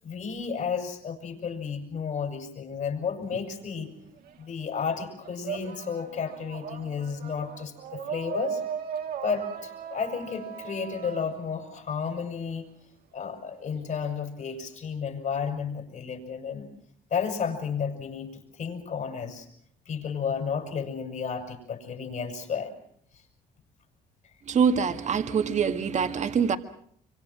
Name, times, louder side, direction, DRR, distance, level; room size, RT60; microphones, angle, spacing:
voice 1, 0.0-3.9 4.4-8.6 9.2-12.7 13.1-16.7 17.1-19.5 19.9-22.7, left 6 dB, 55° left, 7.0 m, -32 dB
sound 1, 3.2-4.5 4.8-12.6, right 7 dB, 70° right, 1.9 m, -38 dB
voice 2, 24.4-26.6, right 6 dB, 50° right, 1.9 m, -24 dB
25.5 x 25.0 x 6.2 m
supercardioid pair, 80°, 16 cm